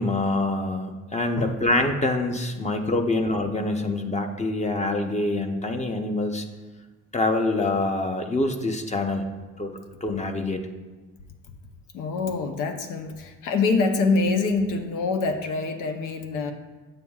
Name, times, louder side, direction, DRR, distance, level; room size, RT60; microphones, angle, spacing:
voice 1, 0.0-6.4 7.1-9.2 9.6-9.7 10.0-10.6, left 2 dB, 25° left, 5 dB, 0.7 m, -25 dB
voice 2, 11.9-16.5, left 3 dB, 90° left, 6 dB, 0.8 m, -25 dB
8.6 x 6.9 x 2.3 m, 1.2 s
cardioid pair, 90°, 30 cm